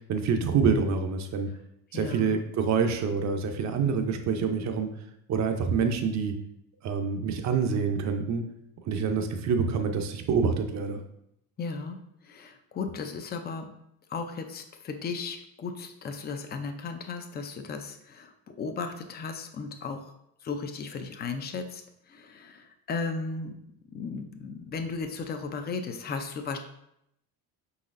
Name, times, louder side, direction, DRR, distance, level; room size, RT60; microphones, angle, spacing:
voice 1, 0.0-1.5 1.9-4.9 5.3-6.3 6.8-8.4 8.9-11.0, right 5 dB, 40° right, 6 dB, 0.6 m, -26 dB
voice 2, 1.9-2.4 11.6-13.7 14.1-20.1 20.4-23.6 23.9-26.6, left 4 dB, 25° left, 6 dB, 0.4 m, -36 dB
5.1 x 4.1 x 2.5 m, 0.78 s
cardioid pair, 125°, 41 cm